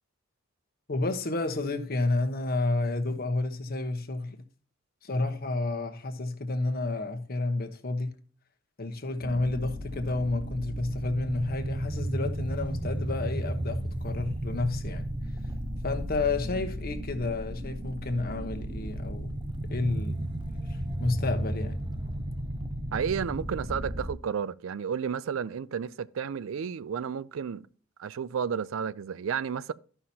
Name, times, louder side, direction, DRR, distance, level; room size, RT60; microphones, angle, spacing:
voice 1, 0.9-4.4 5.0-8.2 8.8-15.1 15.8-19.3 19.7-20.3 21.0-21.8, left 2 dB, 50° left, 1.0 m, -30 dB
sound 1, 9.2-24.1, right 1 dB, 25° right, 0.7 m, -34 dB
voice 2, 22.9-27.7 28.0-29.7, right 7 dB, 80° right, 0.4 m, -32 dB
13.0 x 5.7 x 2.8 m
head